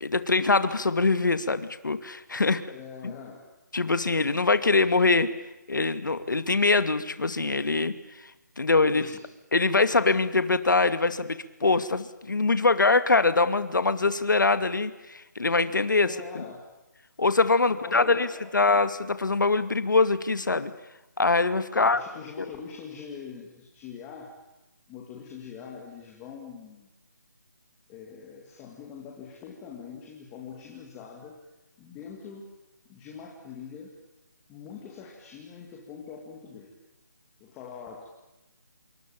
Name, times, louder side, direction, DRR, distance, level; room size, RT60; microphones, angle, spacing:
voice 1, 0.0-2.6 3.0-3.1 3.7-5.3 5.7-7.9 8.6-9.1 9.5-16.4 17.2-18.3 18.5-20.7 21.2-22.0 22.4-22.5, left 3 dB, 90° left, 12 dB, 2.4 m, -23 dB
voice 2, 2.7-3.5 8.9-9.2 16.0-16.7 17.7-18.6 21.7-24.3 24.9-26.9 27.9-31.4 31.8-32.5 32.9-33.9 34.5-36.7 37.4-38.1, left 6 dB, 10° left, 0 dB, 2.2 m, -43 dB
27.0 x 24.0 x 8.8 m, 0.99 s
hypercardioid pair, 175°, 10 cm